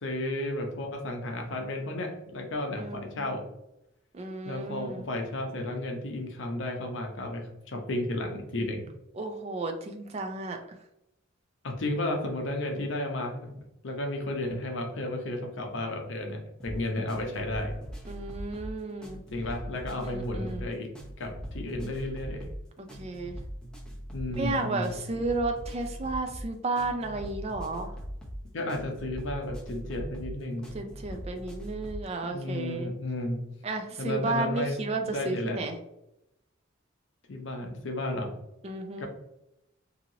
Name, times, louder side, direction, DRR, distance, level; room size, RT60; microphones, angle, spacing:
voice 1, 0.0-3.5 4.4-8.9 11.6-13.5 13.8-17.7 19.3-20.9 21.2-22.5 24.1-24.9 28.5-30.7 32.3-33.4 34.0-35.6 37.3-38.3 39.0-39.1, left 1 dB, 65° left, 3 dB, 0.6 m, -33 dB
voice 2, 2.8-3.3 4.1-5.1 9.2-10.6 18.0-19.2 20.0-20.7 22.8-23.4 24.4-27.9 30.7-32.9 33.6-35.7 38.6-39.1, right 3 dB, 30° right, 5 dB, 0.3 m, -33 dB
sound 1, 16.6-32.1, equal, 5° left, 0.7 m, -41 dB
2.9 x 2.7 x 2.7 m, 0.84 s
head